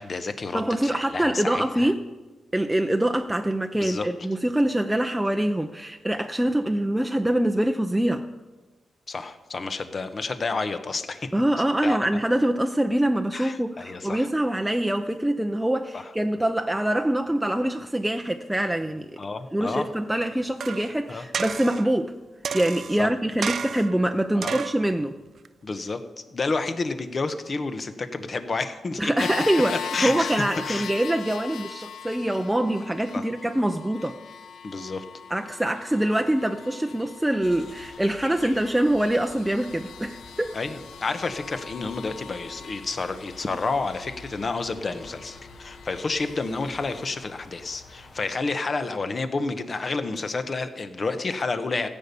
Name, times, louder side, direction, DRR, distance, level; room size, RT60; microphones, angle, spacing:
voice 1, 0.0-1.9 3.8-4.1 9.1-11.3 11.8-12.0 13.3-14.3 15.9-16.1 19.2-19.9 21.1-21.3 23.0-23.1 24.4-24.6 25.6-26.0 26.3-29.3 29.5-30.9 33.1-33.3 34.6-35.0 40.5-51.9, left 3 dB, 40° left, 10 dB, 1.0 m, -30 dB
voice 2, 0.5-2.0 2.5-8.2 11.3-19.1 19.5-22.1 22.5-25.2 29.0-34.2 35.3-40.5, right 1 dB, 10° right, 5 dB, 0.6 m, -24 dB
sound 1, 20.6-20.9 21.3-21.9 22.4-23.0 23.4-24.0 24.4-24.9 25.4-25.5, right 6 dB, 60° right, 0.4 m, -31 dB
sound 2, 29.2-47.1, left 7 dB, 85° left, 0.6 m, -41 dB
sound 3, 37.4-48.3, left 2 dB, 60° left, 2.2 m, -48 dB
15.0 x 5.4 x 8.3 m, 1.2 s
cardioid pair, 90°, 0 cm